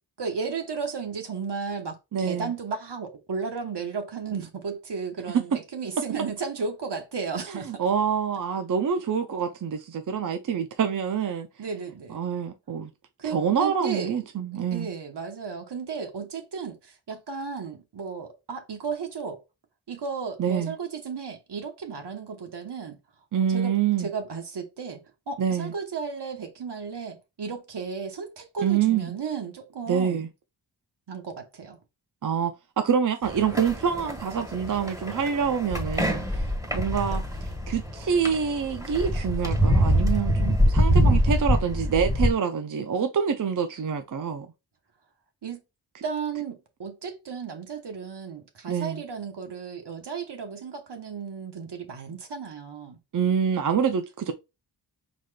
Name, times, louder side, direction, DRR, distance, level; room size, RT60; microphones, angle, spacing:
voice 1, 0.2-7.8 11.6-12.2 13.2-14.1 14.7-19.4 19.9-23.0 23.4-30.3 31.1-31.8 45.4-45.6 46.0-53.0, right 5 dB, 70° right, 1.1 m, -34 dB
voice 2, 2.1-2.5 5.3-5.4 7.5-11.5 12.1-12.9 13.2-14.9 20.4-20.7 23.3-24.1 25.4-25.7 28.6-29.2 29.9-30.3 32.2-36.5 36.7-44.5 48.7-49.0 53.1-54.3, right 7 dB, 50° right, 0.5 m, -26 dB
sound 1, 33.2-42.3, equal, 10° right, 1.4 m, -25 dB
4.9 x 4.1 x 2.2 m
wide cardioid pair, 75°, 42 cm